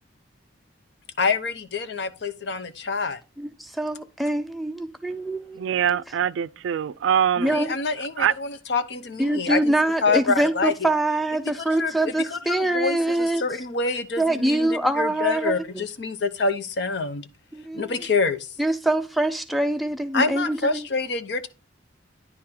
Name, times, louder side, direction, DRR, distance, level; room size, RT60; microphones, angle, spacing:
voice 1, 1.2-3.2 7.4-9.7 10.0-10.7 11.8-17.3 17.7-18.5 20.1-21.5, left 4 dB, 60° left, 0.6 m, -26 dB
voice 2, 3.4-5.8 7.4-7.7 9.2-13.4 14.2-15.8 17.5-17.9 18.6-20.9, right 1 dB, ahead, 0.5 m, -24 dB
voice 3, 5.6-7.6 8.2-8.3, right 9 dB, 75° right, 0.3 m, -23 dB
9.8 x 3.7 x 4.3 m
head